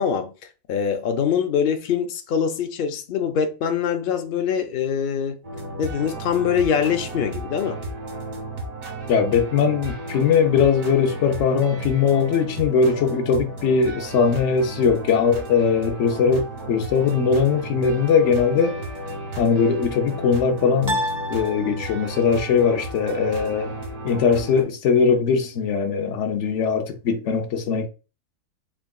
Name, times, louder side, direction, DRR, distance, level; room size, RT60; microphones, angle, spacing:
voice 1, 0.0-5.4 5.8-7.8, left 7 dB, 85° left, 0.4 m, -24 dB
sound 1, 5.4-24.6, right 1 dB, 80° right, 1.8 m, -34 dB
voice 2, 9.1-18.8 19.4-21.0 21.3-23.7 24.0-27.9, left 6 dB, 65° left, 0.8 m, -20 dB
sound 2, 18.3-19.0 20.9-22.3, equal, 35° right, 0.4 m, -31 dB
3.6 x 3.6 x 2.2 m
omnidirectional pair, 1.6 m